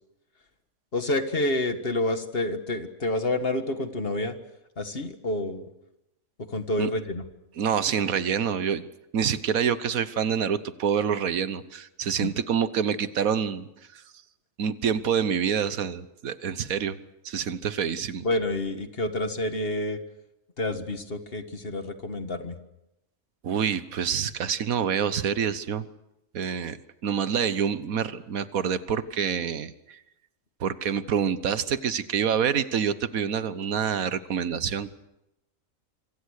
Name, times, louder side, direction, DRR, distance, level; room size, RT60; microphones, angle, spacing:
voice 1, 0.9-4.4 4.8-5.6 6.5-7.2 12.2-12.3 18.2-20.0 20.6-22.6, left 2 dB, 45° left, 9 dB, 1.9 m, -28 dB
voice 2, 7.6-8.9 9.1-13.7 14.6-17.0 17.2-18.2 23.4-25.9 26.3-26.8 27.0-30.0 30.6-35.0, right 7 dB, 90° right, 14 dB, 1.5 m, -27 dB
26.0 x 25.5 x 6.6 m, 0.87 s
omnidirectional pair, 1.4 m